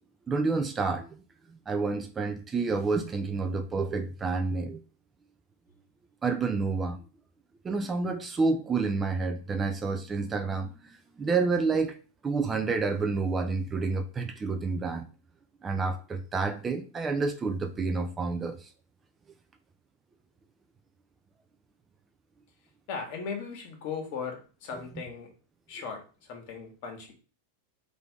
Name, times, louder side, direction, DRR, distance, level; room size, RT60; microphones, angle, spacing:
voice 1, 0.3-1.2 1.5-4.8 6.2-7.0 7.6-12.0 12.2-15.1 15.6-18.7, right 4 dB, 15° right, 0.3 m, -29 dB
voice 2, 22.9-25.3 25.7-26.0 26.3-27.1, left 5 dB, 50° left, 1.4 m, -37 dB
3.3 x 2.6 x 4.5 m
supercardioid pair, 145°, 0 cm